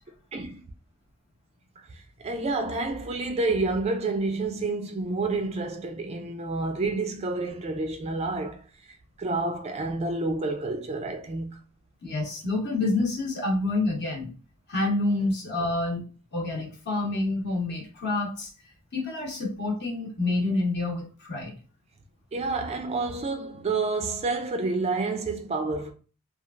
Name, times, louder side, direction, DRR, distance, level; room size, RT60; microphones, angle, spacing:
voice 1, 1.8-8.6 8.9-11.6 22.3-25.9, right 3 dB, 30° right, 0.3 m, -29 dB
voice 2, 12.0-14.3 14.7-16.0 16.3-18.5 18.9-21.5, left 2 dB, 50° left, 0.9 m, -28 dB
3.1 x 2.3 x 2.4 m
head